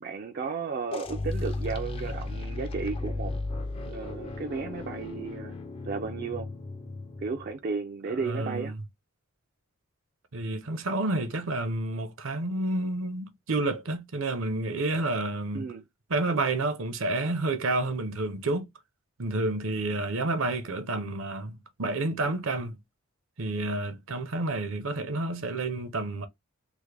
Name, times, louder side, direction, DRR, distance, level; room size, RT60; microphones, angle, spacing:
voice 1, 0.0-3.4 3.8-5.6 5.8-6.5 7.2-8.7 15.5-15.9, right 5 dB, 45° right, 0.3 m, -34 dB
sound 1, 0.9-7.5, left 2 dB, 25° left, 0.4 m, -35 dB
voice 2, 8.1-8.8 10.3-15.7 16.1-18.7 19.2-22.8 23.4-26.3, right 2 dB, 65° right, 0.7 m, -30 dB
3.4 x 2.1 x 3.2 m
head